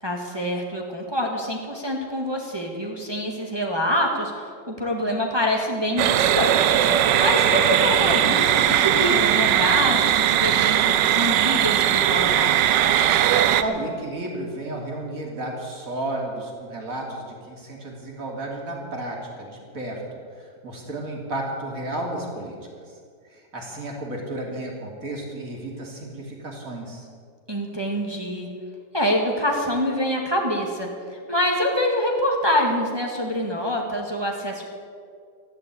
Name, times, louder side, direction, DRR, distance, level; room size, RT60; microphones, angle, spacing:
voice 1, 0.0-12.6 27.5-28.5 28.9-34.6, left 1 dB, 15° right, 0 dB, 1.7 m, -25 dB
sound 1, 6.0-13.6, right 11 dB, 85° right, 1.4 m, -19 dB
voice 2, 13.6-22.6 22.9-23.0 23.3-27.1, right 1 dB, 50° right, -1 dB, 3.3 m, -32 dB
14.5 x 11.5 x 8.4 m, 2.2 s
omnidirectional pair, 1.9 m